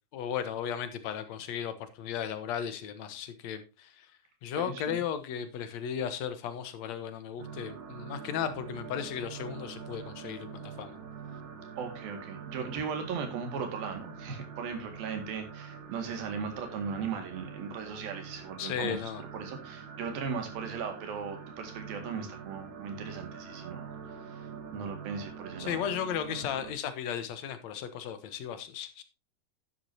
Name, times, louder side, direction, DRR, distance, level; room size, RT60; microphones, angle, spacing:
voice 1, 0.1-4.1 4.4-11.0 18.6-19.2 25.6-29.0, left 8 dB, 65° left, 2.0 m, -35 dB
voice 2, 4.5-5.1 11.8-23.9 24.2-25.8, right 6 dB, 85° right, 3.9 m, -38 dB
sound 1, 7.4-26.7, right 6 dB, 55° right, 2.3 m, -45 dB
10.5 x 10.5 x 2.8 m
omnidirectional pair, 4.1 m